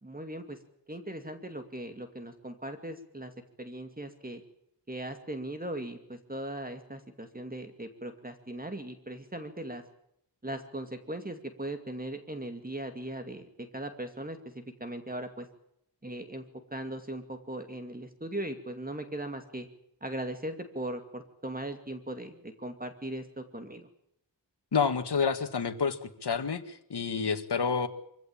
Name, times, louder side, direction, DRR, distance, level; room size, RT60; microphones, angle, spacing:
voice 1, 0.0-0.6 0.9-3.3 3.6-4.4 4.9-9.8 10.4-15.5 16.0-16.4 16.7-19.7 20.0-23.9, right 1 dB, 20° right, 7 dB, 2.4 m, -39 dB
voice 2, 24.7-27.9, left 5 dB, 65° left, 7 dB, 2.0 m, -29 dB
24.5 x 16.0 x 9.0 m, 0.75 s
wide cardioid pair, 90°, 43 cm